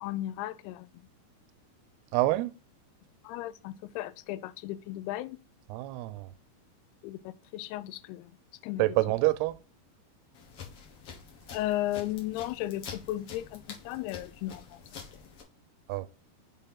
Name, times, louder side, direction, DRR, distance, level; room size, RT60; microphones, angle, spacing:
voice 1, 0.0-1.0 3.2-5.4 7.0-8.3 8.6-8.8 11.5-14.8, left 15 dB, 90° left, 2.6 m, -35 dB
voice 2, 2.1-2.5 5.7-6.3 8.8-9.5 15.9-16.1, right 18 dB, 90° right, 2.6 m, -27 dB
sound 1, 10.3-15.4, left 6 dB, 60° left, 1.5 m, -47 dB
6.5 x 3.7 x 5.6 m
omnidirectional pair, 4.5 m